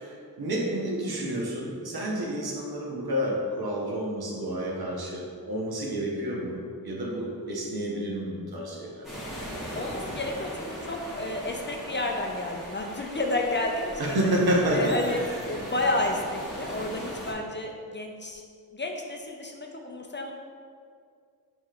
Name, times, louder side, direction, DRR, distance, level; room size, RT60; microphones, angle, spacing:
voice 1, 0.0-9.1 14.0-15.2, right 1 dB, 80° right, -2 dB, 0.9 m, -29 dB
sound 1, 9.0-17.3, equal, ahead, 1.1 m, -39 dB
voice 2, 9.8-14.2 14.7-18.4 18.7-20.3, left 2 dB, 30° left, 1 dB, 0.4 m, -31 dB
6.3 x 3.0 x 2.4 m, 2.2 s
wide cardioid pair, 80°, 37 cm